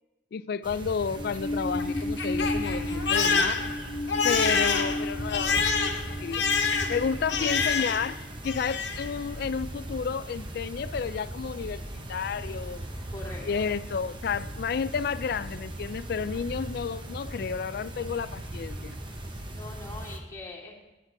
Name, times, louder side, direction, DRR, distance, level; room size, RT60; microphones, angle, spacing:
voice 1, 0.3-3.6 4.2-5.9 6.2-6.5 6.9-11.8 12.1-12.9 13.4-19.0, left 6 dB, 60° left, 0.3 m, -31 dB
sound 1, 0.6-20.2, right 1 dB, 25° right, 0.9 m, -38 dB
Crying sobbing, 1.2-8.2 8.4-9.1, left 4 dB, 75° left, 1.1 m, -27 dB
voice 2, 13.1-13.7 19.5-20.8, left 2 dB, 20° left, 2.1 m, -43 dB
9.7 x 8.1 x 4.6 m
head